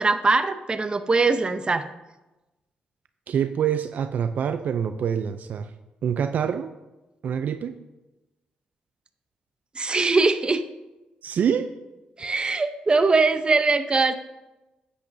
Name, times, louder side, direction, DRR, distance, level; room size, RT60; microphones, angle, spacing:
voice 1, 0.0-1.9 9.8-10.6 12.2-14.1, right 3 dB, 30° right, 10 dB, 0.7 m, -21 dB
voice 2, 3.3-5.7 6.0-6.7 7.2-7.7 11.2-11.7, right 8 dB, 65° right, 9 dB, 0.4 m, -25 dB
10.0 x 8.6 x 2.6 m, 1.0 s
cardioid pair, 70°, 3 cm